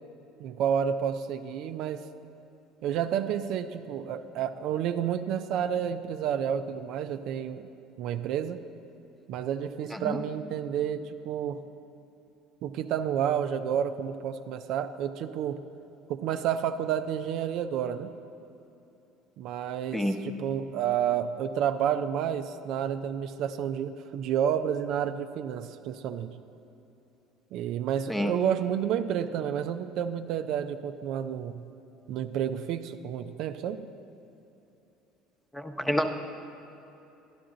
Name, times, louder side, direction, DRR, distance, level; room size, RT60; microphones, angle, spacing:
voice 1, 0.4-2.1 2.8-7.7 8.0-8.6 9.3-11.6 12.6-15.6 16.1-18.1 19.4-26.4 27.5-31.7 32.1-33.9, right 9 dB, 65° right, 9 dB, 0.4 m, -30 dB
voice 2, 35.5-36.1, equal, 10° left, 5 dB, 0.8 m, -28 dB
12.5 x 11.0 x 3.8 m, 2.9 s
supercardioid pair, 90°, 0 cm